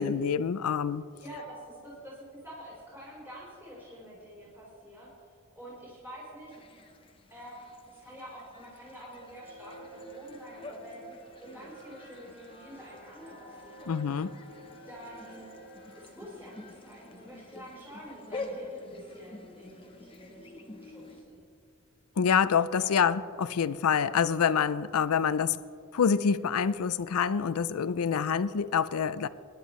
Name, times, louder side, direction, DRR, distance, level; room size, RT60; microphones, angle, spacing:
voice 1, 0.0-1.0 13.9-14.3 22.2-25.6 25.9-29.3, left 7 dB, 80° left, 16 dB, 0.5 m, -26 dB
voice 2, 1.2-5.3 5.5-6.6 7.3-11.0 11.4-14.0 14.8-15.5 16.0-21.4 22.8-23.0, equal, 10° right, -7 dB, 4.1 m, -47 dB
sound 1, 6.5-21.2, left 2 dB, 25° left, 0.9 m, -47 dB
sound 2, 8.8-18.3, right 2 dB, 25° right, 3.6 m, -51 dB
25.5 x 11.0 x 3.2 m, 2.4 s
head